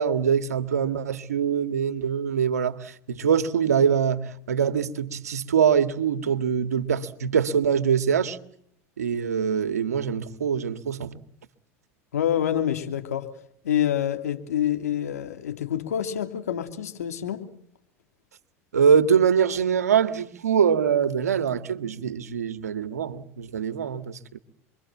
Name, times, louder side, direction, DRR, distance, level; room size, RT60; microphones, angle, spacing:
voice 1, 0.0-8.4 9.0-11.2 18.7-24.4, right 7 dB, 90° right, 1.9 m, -23 dB
voice 2, 12.1-13.3 13.6-17.4, left 10 dB, 85° left, 2.8 m, -27 dB
27.0 x 23.5 x 7.4 m
hypercardioid pair, 90°, 8 cm